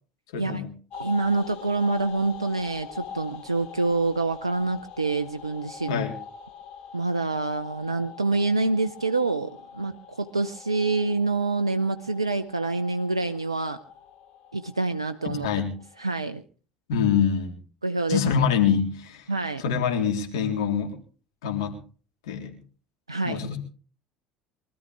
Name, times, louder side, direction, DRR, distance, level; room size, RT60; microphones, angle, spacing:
voice 1, 0.3-0.7 5.9-6.1 15.4-15.8 16.9-17.6 18.1-19.3 19.6-21.0 21.4-21.8 22.3-22.6 23.2-23.6, left 7 dB, 70° left, 3 dB, 3.8 m, -25 dB
sound 1, 0.9-16.3, left 7 dB, 55° left, 5.7 m, -43 dB
voice 2, 0.9-6.1 6.9-13.8 14.5-15.5 16.0-16.4 17.8-18.2 19.3-19.6 23.1-23.4, right 3 dB, 90° right, 11 dB, 0.6 m, -26 dB
23.5 x 13.5 x 3.5 m, 0.39 s
figure-of-eight pair, 60°, 3 cm